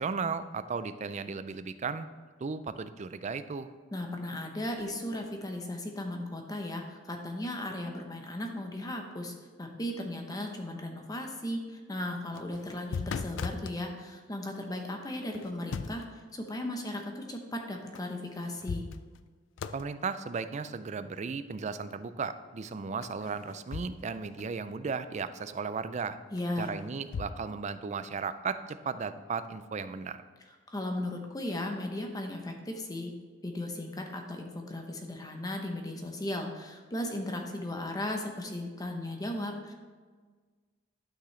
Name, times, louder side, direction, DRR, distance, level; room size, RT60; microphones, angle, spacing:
voice 1, 0.0-2.1 2.4-3.7 19.7-26.2 26.6-30.2, right 5 dB, 40° right, 12 dB, 0.4 m, -35 dB
voice 2, 3.9-16.0 16.3-18.9 26.3-26.8 30.7-33.1 33.4-39.7, left 1 dB, 20° left, 3 dB, 0.8 m, -36 dB
sound 1, 12.2-13.8 15.3-16.1 18.0-18.1 18.4-19.3 19.6-19.9 23.0-24.1 24.4-24.5 26.4-27.3, left 5 dB, 85° left, 0.4 m, -38 dB
11.5 x 6.0 x 3.3 m, 1.5 s
head